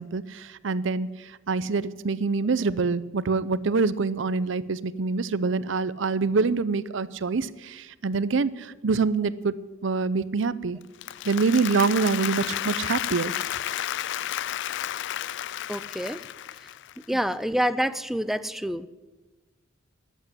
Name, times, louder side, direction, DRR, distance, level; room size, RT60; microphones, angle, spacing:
voice 1, 0.0-9.5 9.8-10.8 11.3-13.4 17.1-17.2, right 4 dB, 70° right, 17 dB, 0.6 m, -25 dB
Applause, 10.8-17.0, left 12 dB, 65° left, 0.4 m, -32 dB
voice 2, 15.7-16.2 17.1-18.9, equal, ahead, 14 dB, 0.5 m, -27 dB
12.5 x 8.2 x 9.9 m, 1.2 s
head